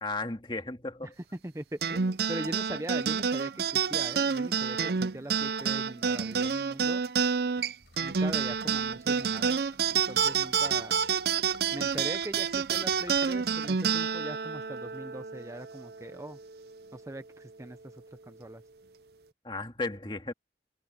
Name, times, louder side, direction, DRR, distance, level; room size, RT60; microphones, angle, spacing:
voice 1, 0.0-1.1 19.4-20.3, left 3 dB, 25° left, 2.1 m, -34 dB
voice 2, 1.0-7.0 8.0-9.6 9.9-10.9 11.7-16.4 16.9-18.6, right 1 dB, 15° right, 0.7 m, -41 dB
sound 1, 1.8-16.6, right 6 dB, 60° right, 0.6 m, -29 dB
Gurgling / Liquid, 7.8-13.6, left 3 dB, 85° left, 5.5 m, -55 dB
head